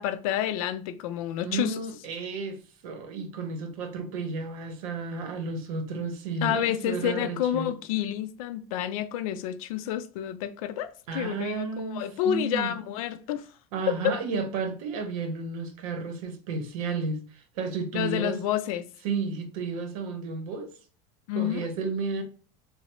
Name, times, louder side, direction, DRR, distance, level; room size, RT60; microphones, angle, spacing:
voice 1, 0.0-1.8 6.4-13.5 14.0-14.1 17.9-18.9 21.3-21.7, left 11 dB, 85° left, 0.4 m, -29 dB
voice 2, 1.4-7.7 11.1-12.7 13.7-18.4 19.0-20.7 21.3-22.2, right 4 dB, 85° right, 0.8 m, -32 dB
3.1 x 2.0 x 2.9 m
cardioid pair, 165°, 17 cm